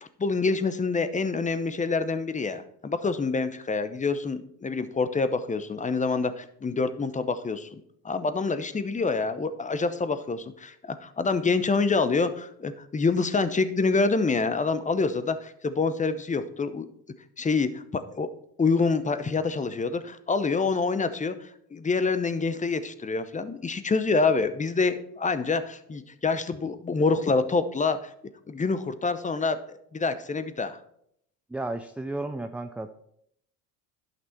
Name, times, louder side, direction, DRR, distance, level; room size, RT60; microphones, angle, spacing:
voice 1, 0.0-16.9 17.4-18.3 18.6-21.3 21.7-28.1 28.5-30.8, left 4 dB, 15° left, 12 dB, 0.8 m, -26 dB
voice 2, 31.5-32.9, right 2 dB, 5° right, 7 dB, 0.3 m, -33 dB
11.0 x 6.2 x 4.4 m, 0.71 s
hypercardioid pair, 75°, 43 cm